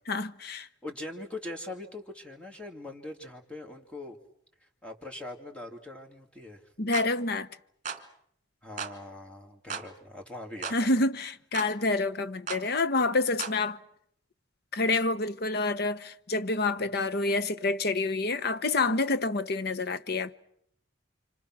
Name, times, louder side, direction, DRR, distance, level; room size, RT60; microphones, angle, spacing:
voice 1, 0.1-0.7 6.8-7.5 10.7-13.8 14.7-20.3, left 3 dB, 55° left, 1.0 m, -28 dB
voice 2, 0.6-4.2 4.8-6.7 8.6-10.9 16.8-16.9, left 2 dB, 5° left, 2.7 m, -42 dB
sound 1, 6.9-7.1 7.9-8.0 8.8-9.0 9.7-9.9 10.6-10.8 11.5-11.7 12.5-12.7 13.4-13.6, right 6 dB, 40° right, 2.0 m, -36 dB
29.5 x 26.0 x 6.1 m
head